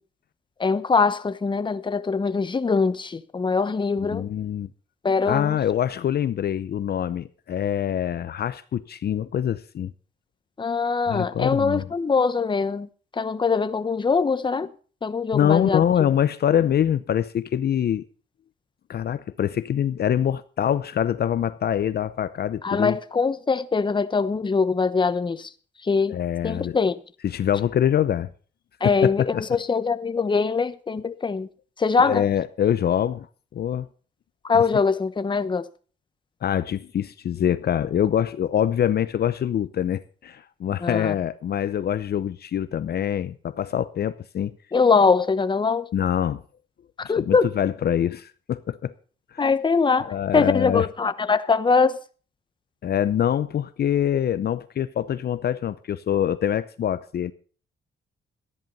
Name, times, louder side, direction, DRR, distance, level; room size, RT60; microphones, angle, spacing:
voice 1, 0.6-4.3 5.0-5.6 10.6-12.9 13.2-14.7 15.0-15.8 22.6-25.5 25.8-26.1 26.4-27.0 28.8-31.5 31.8-32.2 34.4-35.7 40.8-41.2 44.7-45.9 47.0-47.5 49.4-52.0, left 4 dB, 25° left, 0.9 m, -22 dB
voice 2, 4.0-4.7 5.3-9.9 11.1-11.9 15.3-18.0 18.9-23.0 26.1-26.8 27.2-28.3 28.8-29.4 32.0-33.3 33.5-33.9 36.4-44.6 45.9-46.4 47.2-48.9 49.3-49.4 50.1-50.9 52.8-57.3, left 9 dB, 55° left, 0.7 m, -24 dB
13.5 x 10.5 x 5.4 m
cardioid pair, 90°, 20 cm